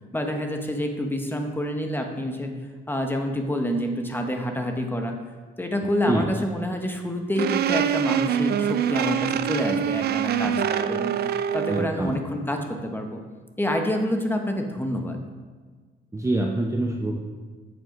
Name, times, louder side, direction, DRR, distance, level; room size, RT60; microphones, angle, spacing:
voice 1, 0.1-2.5 2.9-5.2 5.6-11.2 11.5-13.2 13.6-15.2, left 1 dB, 10° left, 4 dB, 1.0 m, -27 dB
sound 1, 7.4-11.9, right 9 dB, 55° right, 0.4 m, -25 dB
voice 2, 11.7-12.2 16.1-17.2, right 2 dB, 15° right, 0 dB, 0.7 m, -25 dB
7.6 x 5.0 x 5.1 m, 1.5 s
cardioid pair, 90°, 20 cm